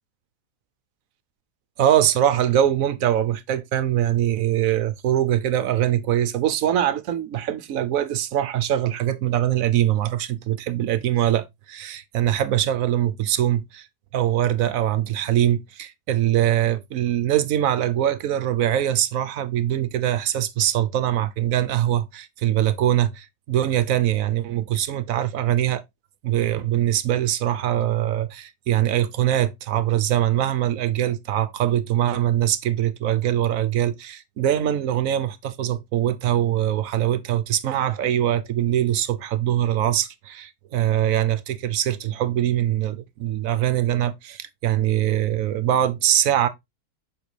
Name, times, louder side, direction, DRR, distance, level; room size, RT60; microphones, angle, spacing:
voice 1, 1.8-13.9 14.1-25.8 26.2-46.5, right 11 dB, 70° right, 1.0 m, -22 dB
7.5 x 5.1 x 3.2 m
omnidirectional pair, 1.7 m